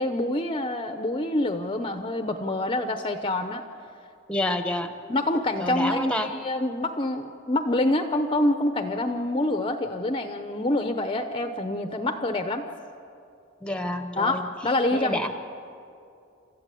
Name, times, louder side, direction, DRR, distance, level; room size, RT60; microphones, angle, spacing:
voice 1, 0.0-3.6 5.1-12.6 14.2-15.3, left 1 dB, 25° left, 7 dB, 0.8 m, -26 dB
voice 2, 4.3-4.9 5.6-6.3 13.6-14.4 14.9-15.3, left 1 dB, 5° left, 8 dB, 1.1 m, -28 dB
29.0 x 14.0 x 8.4 m, 2.5 s
head